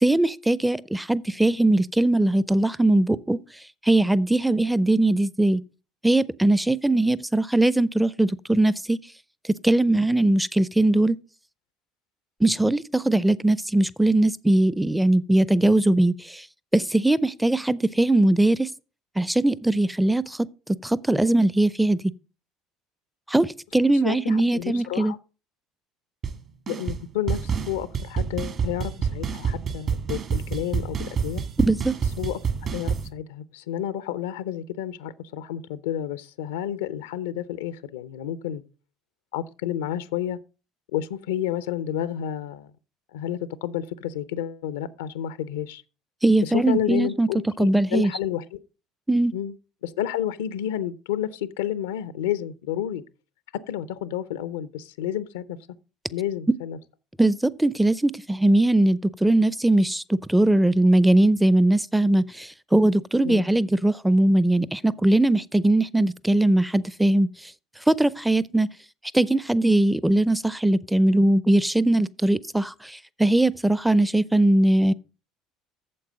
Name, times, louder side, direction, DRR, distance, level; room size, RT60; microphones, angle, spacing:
voice 1, 0.0-3.4 3.8-5.6 6.0-9.0 9.6-11.2 12.4-16.4 16.7-18.7 19.2-20.5 20.8-22.1 23.3-25.1 31.7-31.9 46.2-47.3 47.6-48.1 49.1-49.3 57.2-67.3 67.9-68.7 69.1-74.9, right 1 dB, 5° right, 0.5 m, -20 dB
voice 2, 24.0-25.2 26.7-31.4 32.2-32.4 32.7-38.6 39.3-40.4 40.9-42.7 43.1-45.8 46.4-48.6 49.3-49.5 49.8-53.0 53.5-55.6 56.1-56.8 63.2-63.5, left 11 dB, 80° left, 0.5 m, -30 dB
sound 1, 26.2-26.4 26.7-27.0 27.3-33.1, right 6 dB, 45° right, 1.7 m, -28 dB
8.6 x 7.3 x 5.0 m
hypercardioid pair, 65°, 0 cm